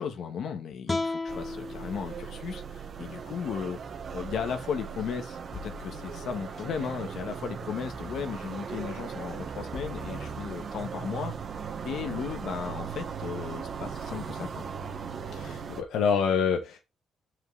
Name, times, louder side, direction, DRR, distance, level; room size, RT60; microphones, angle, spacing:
voice 1, 0.0-3.8 4.1-11.3 11.8-14.7, left 7 dB, 70° left, 1.7 m, -35 dB
sound 1, 0.9-4.0, left 3 dB, 20° left, 0.7 m, -36 dB
sound 2, 1.3-15.8, right 6 dB, 55° right, 1.6 m, -38 dB
sound 3, 5.5-6.8 8.7-8.8 9.7-11.1 12.9-13.0 13.5-13.6, left 8 dB, 55° left, 1.9 m, -46 dB
voice 2, 15.3-16.8, left 6 dB, 85° left, 1.4 m, -26 dB
7.3 x 6.7 x 4.1 m
cardioid pair, 90°, 0 cm